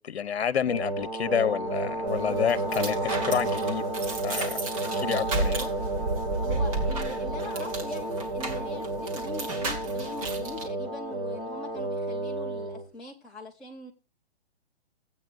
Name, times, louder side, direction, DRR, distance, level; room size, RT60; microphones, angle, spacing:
voice 1, 0.0-3.9 4.2-4.6 4.9-5.6, left 8 dB, 70° left, 0.9 m, -29 dB
sound 1, 0.6-12.9, right 2 dB, 15° right, 1.4 m, -31 dB
sound 2, 2.1-10.7, right 2 dB, 30° right, 1.9 m, -33 dB
voice 2, 2.3-2.7 5.5-5.7 6.4-13.9, left 1 dB, ahead, 0.5 m, -42 dB
16.0 x 8.7 x 2.5 m
hypercardioid pair, 165°, 32 cm